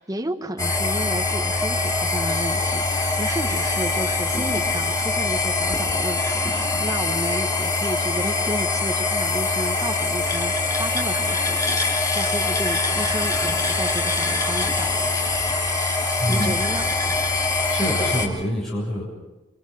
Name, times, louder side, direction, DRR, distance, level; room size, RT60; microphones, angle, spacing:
voice 1, 0.0-10.5 10.8-15.3 16.3-16.8, right 1 dB, 20° right, 5 dB, 1.3 m, -32 dB
sound 1, 0.6-18.3, left 3 dB, 20° left, 3.2 m, -23 dB
voice 2, 16.2-16.5 17.7-19.0, equal, ahead, -6 dB, 7.5 m, -26 dB
29.0 x 25.5 x 5.4 m, 1.0 s
head